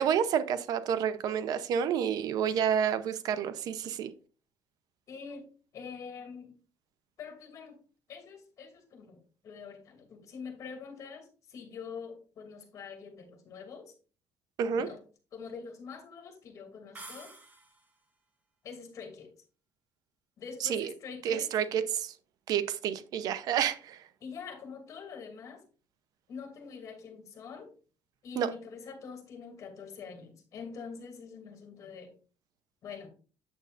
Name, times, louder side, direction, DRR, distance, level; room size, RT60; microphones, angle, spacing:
voice 1, 0.0-4.1 14.6-14.9 20.6-20.9 21.2-22.1 22.5-24.0 28.4-28.5, right 8 dB, 65° right, 0.8 m, -29 dB
voice 2, 5.1-5.5 5.7-6.5 7.2-7.8 8.1-13.9 14.7-15.0 15.3-17.3 18.6-19.3 20.4-21.5 24.2-25.6 26.3-27.7 28.2-32.1 32.8-33.1, left 5 dB, 50° left, 2.8 m, -45 dB
sound 1, 16.9-18.0, right 2 dB, 20° right, 2.4 m, -49 dB
8.8 x 7.8 x 2.6 m
cardioid pair, 130°, 7 cm